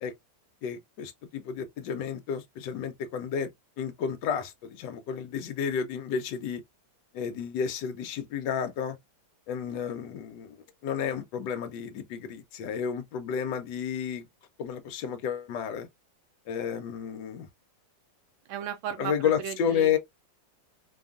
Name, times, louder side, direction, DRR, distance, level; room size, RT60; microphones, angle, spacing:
voice 1, 0.6-3.5 3.8-6.6 7.1-9.0 9.5-10.6 10.8-14.3 14.6-15.9 16.5-17.5 19.0-20.0, left 7 dB, 75° left, 1.2 m, -31 dB
voice 2, 18.5-19.1 19.4-20.0, right 9 dB, 90° right, 1.4 m, -35 dB
3.3 x 2.3 x 2.4 m
omnidirectional pair, 2.1 m